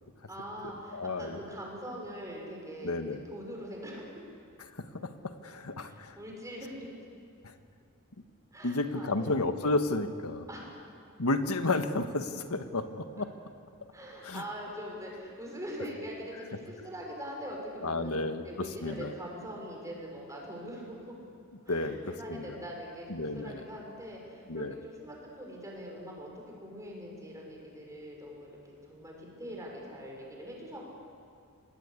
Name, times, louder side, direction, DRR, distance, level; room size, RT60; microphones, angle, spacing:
voice 1, 0.3-4.2 5.8-6.9 8.5-9.4 10.5-10.8 13.9-18.2 18.4-21.1 21.6-26.3 26.6-30.9, equal, 15° right, -1 dB, 6.5 m, -43 dB
voice 2, 0.9-1.4 2.8-3.2 4.7-6.2 7.4-7.5 8.6-10.4 11.2-13.3 14.2-14.4 17.8-19.1 21.7-22.6 23.1-23.6 24.5-24.8, left 2 dB, 80° left, 8 dB, 1.5 m, -32 dB
26.5 x 20.0 x 8.5 m, 2.4 s
head